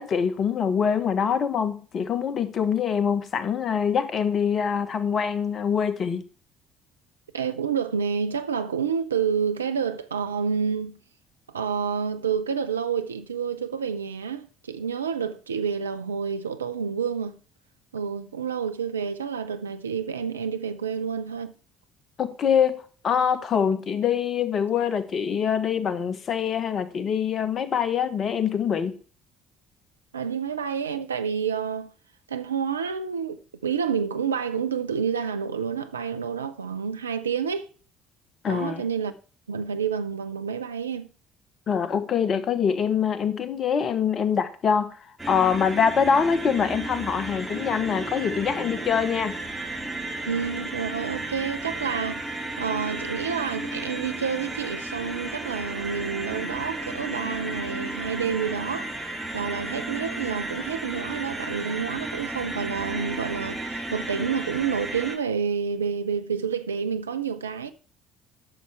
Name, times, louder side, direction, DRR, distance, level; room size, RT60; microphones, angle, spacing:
voice 1, 0.0-6.2 22.2-28.9 38.4-38.8 41.7-44.9 45.3-49.3, left 7 dB, 45° left, 1.0 m, -24 dB
voice 2, 7.3-11.0 11.5-17.4 17.9-21.5 30.1-31.9 32.3-37.7 38.5-39.1 39.5-41.1 50.3-58.9 59.3-67.7, right 6 dB, 80° right, 0.5 m, -29 dB
sound 1, 45.2-65.2, right 2 dB, 5° right, 2.4 m, -33 dB
11.5 x 6.8 x 3.4 m
figure-of-eight pair, 50°, 0 cm